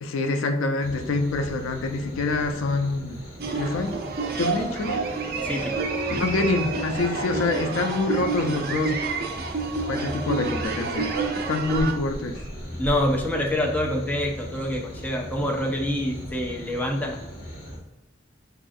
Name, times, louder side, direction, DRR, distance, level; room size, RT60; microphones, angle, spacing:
voice 1, 0.0-3.2 3.5-3.9 4.4-5.1 6.2-9.0 9.9-11.1 11.5-12.4, left 3 dB, 85° left, 6 dB, 0.4 m, -26 dB
sound 1, 0.8-17.8, equal, 50° left, 1.3 m, -38 dB
sound 2, 3.4-11.9, right 4 dB, 50° right, 0.5 m, -29 dB
voice 2, 5.4-5.8 6.1-6.2 12.8-17.2, left 1 dB, 10° left, 0 dB, 0.4 m, -26 dB
5.2 x 2.4 x 2.5 m, 1.0 s
head